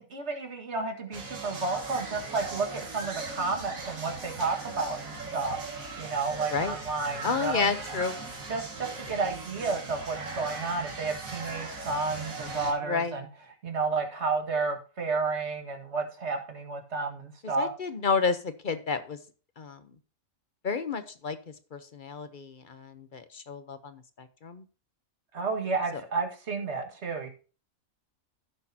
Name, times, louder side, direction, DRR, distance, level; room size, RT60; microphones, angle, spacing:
voice 1, 0.0-5.6 6.0-7.7 8.5-13.3 13.6-17.7 25.3-27.3, right 4 dB, 55° right, 4 dB, 1.9 m, -31 dB
sound 1, 1.1-12.7, right 3 dB, 85° right, 2.3 m, -39 dB
voice 2, 7.2-8.2 9.1-9.2 12.8-13.2 17.4-19.2 19.6-19.8 20.6-21.4 21.7-24.6, left 5 dB, 45° left, 11 dB, 0.8 m, -31 dB
15.0 x 6.4 x 2.8 m, 0.35 s
omnidirectional pair, 1.4 m